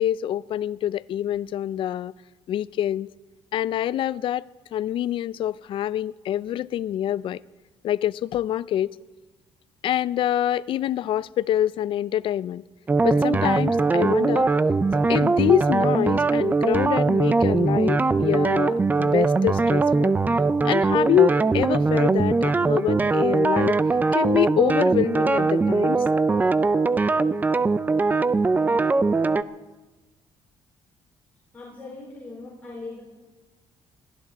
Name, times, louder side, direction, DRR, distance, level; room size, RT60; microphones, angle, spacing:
voice 1, 0.0-2.1 2.5-3.1 3.5-4.5 4.7-7.4 7.8-8.9 9.8-12.6 13.0-14.5 15.1-20.1 20.6-23.8 24.1-26.0, left 11 dB, 55° left, 0.4 m, -25 dB
sound 1, 12.9-29.4, right 3 dB, 15° right, 0.4 m, -21 dB
voice 2, 31.5-33.0, left 3 dB, 15° left, 4.0 m, -39 dB
21.5 x 14.5 x 4.2 m
cardioid pair, 150°, 11 cm